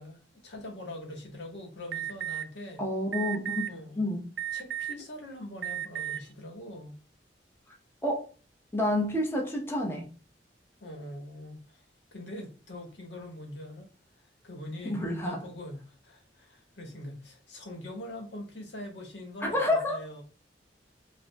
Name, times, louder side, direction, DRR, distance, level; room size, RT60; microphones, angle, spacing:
voice 1, 0.0-2.8 3.7-4.0 4.5-7.0 10.8-13.9 14.2-20.2, left 1 dB, 85° left, 1.5 m, -43 dB
Alarm, 1.9-2.4 3.1-3.7 4.4-5.0 5.6-6.2, right 12 dB, 65° right, 0.4 m, -33 dB
voice 2, 2.8-4.3 8.0-8.2 8.7-10.1 14.8-15.4 19.4-20.0, left 1 dB, 15° left, 0.8 m, -29 dB
5.1 x 2.7 x 2.2 m
head